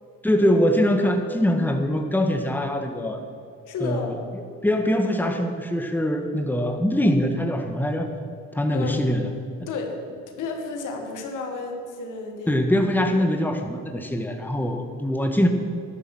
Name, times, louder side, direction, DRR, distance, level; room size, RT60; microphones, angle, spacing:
voice 1, 0.2-3.2 3.8-4.2 4.6-8.1 8.5-9.3 12.5-15.5, equal, 5° left, 4 dB, 1.6 m, -23 dB
voice 2, 3.7-4.2 8.7-9.0 9.7-12.6 13.1-13.3, left 3 dB, 85° left, 3 dB, 2.1 m, -32 dB
12.5 x 12.0 x 6.2 m, 2.4 s
cardioid pair, 90°, 30 cm